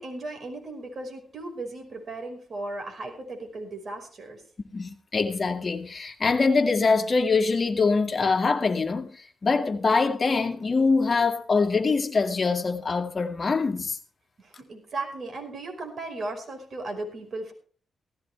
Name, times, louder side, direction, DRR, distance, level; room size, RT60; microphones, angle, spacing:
voice 1, 0.0-4.4 14.4-17.5, right 2 dB, 55° right, 5.2 m, -36 dB
voice 2, 4.7-14.0, left 4 dB, 40° left, 2.2 m, -24 dB
17.0 x 15.0 x 3.5 m
cardioid pair, 95°, 0 cm